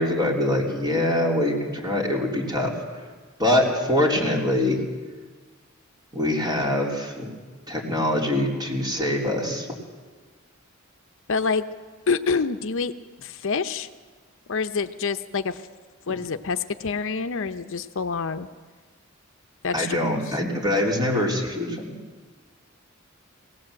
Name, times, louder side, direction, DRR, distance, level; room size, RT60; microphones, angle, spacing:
voice 1, 0.0-2.7 3.4-4.8 6.1-7.3 7.7-9.7 16.1-16.2 19.7-22.0, left 1 dB, 20° right, -1 dB, 3.6 m, -24 dB
voice 2, 11.3-11.6 12.1-12.9 13.2-13.9 14.5-15.6 16.1-18.5 19.6-20.2, left 5 dB, 65° left, 9 dB, 0.7 m, -27 dB
20.5 x 18.0 x 7.7 m, 1.4 s
head